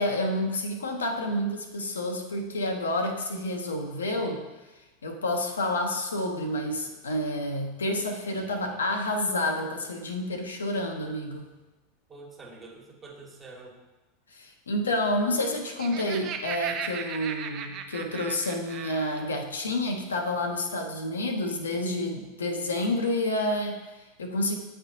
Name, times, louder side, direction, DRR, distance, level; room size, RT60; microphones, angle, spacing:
voice 1, 0.0-4.4 5.0-11.5 14.3-24.5, left 1 dB, 75° left, 4 dB, 0.6 m, -29 dB
voice 2, 8.4-8.8 12.1-13.8, right 2 dB, 20° right, 0 dB, 1.3 m, -47 dB
Laughter, 15.4-19.3, right 7 dB, 40° right, 0.5 m, -37 dB
8.6 x 4.3 x 2.6 m, 1.1 s
figure-of-eight pair, 85°, 0 cm